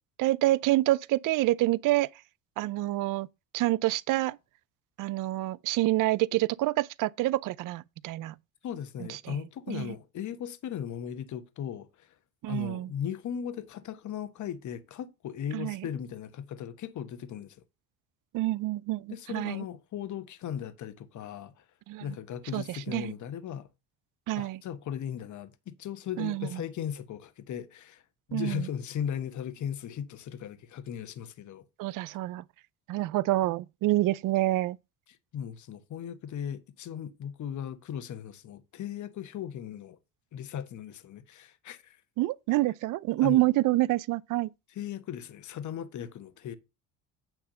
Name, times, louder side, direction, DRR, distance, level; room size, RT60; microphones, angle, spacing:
voice 1, 0.2-2.1 2.6-3.3 3.5-4.4 5.0-8.3 9.1-9.4 9.7-9.9 12.4-12.9 15.5-15.8 18.3-19.6 21.9-22.1 22.5-23.1 24.3-24.6 26.2-26.6 28.3-28.7 31.8-32.4 32.9-34.8 42.2-44.5, right 17 dB, 60° right, 0.5 m, -27 dB
voice 2, 8.6-12.1 12.5-17.6 19.1-21.6 22.0-23.7 24.4-28.0 28.3-31.6 35.3-40.0 40.3-42.0 43.2-43.4 44.7-46.6, left 9 dB, 50° left, 1.2 m, -37 dB
9.1 x 3.6 x 6.7 m
supercardioid pair, 95°, 37 cm